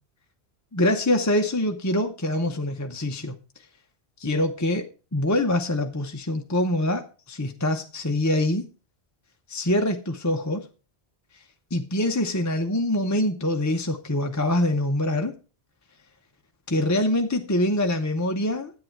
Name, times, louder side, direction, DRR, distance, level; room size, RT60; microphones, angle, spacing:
voice 1, 0.7-3.4 4.2-4.8 5.1-8.6 9.5-10.7 11.7-15.3 16.7-18.7, left 1 dB, 20° left, 4 dB, 0.7 m, -24 dB
10.5 x 8.5 x 4.6 m, 0.34 s
omnidirectional pair, 1.1 m